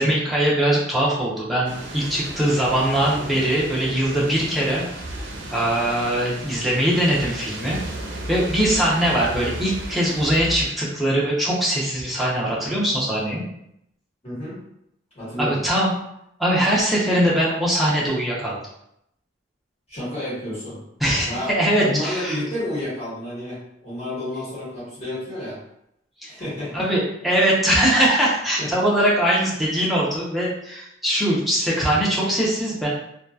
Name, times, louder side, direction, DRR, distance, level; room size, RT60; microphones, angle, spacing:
voice 1, 0.0-4.8 5.5-7.8 8.3-13.4 15.4-15.9 16.4-18.6 21.0-22.4 26.2-26.3 26.7-32.9, right 1 dB, ahead, -7 dB, 0.6 m, -21 dB
sound 1, 1.7-10.6, right 1 dB, 70° right, 0.5 m, -34 dB
voice 2, 14.2-14.6 15.1-15.6 19.9-20.8 21.2-21.5 21.8-25.6 26.3-26.8 28.6-28.9, left 1 dB, 35° left, -10 dB, 1.5 m, -30 dB
2.7 x 2.3 x 2.2 m, 0.77 s
head